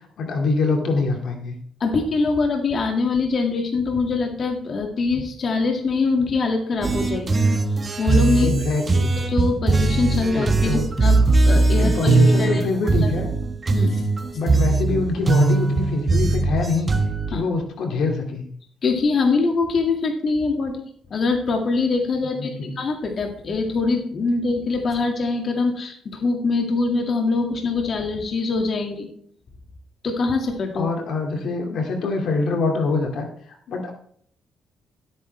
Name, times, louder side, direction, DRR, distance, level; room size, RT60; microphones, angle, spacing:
voice 1, 0.2-1.5 8.4-9.1 10.3-10.8 11.8-13.3 14.3-16.9 17.3-18.4 22.4-22.7 30.8-33.3 33.7-33.9, left 3 dB, 70° left, 2 dB, 2.2 m, -24 dB
voice 2, 1.8-7.5 8.0-8.5 9.2-12.6 13.0-13.1 13.7-14.1 17.3-17.4 18.8-20.8 21.1-29.1 30.0-30.9, left 3 dB, 50° left, 2 dB, 2.0 m, -23 dB
sound 1, 6.8-17.3, right 3 dB, 30° right, 1.3 m, -20 dB
14.5 x 8.8 x 3.3 m, 0.62 s
cardioid pair, 90°, 0 cm